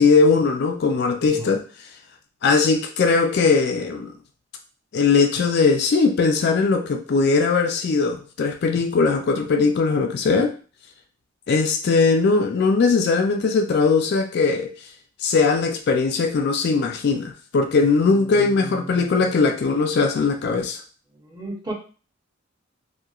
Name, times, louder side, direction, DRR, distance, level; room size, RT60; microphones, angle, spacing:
voice 1, 0.0-1.6 2.4-4.1 4.9-10.5 11.5-14.7 15.2-20.8, left 4 dB, 55° left, 5 dB, 0.3 m, -20 dB
voice 2, 18.4-19.3 21.3-21.7, right 2 dB, 20° right, -2 dB, 0.7 m, -35 dB
2.8 x 2.2 x 2.3 m, 0.37 s
head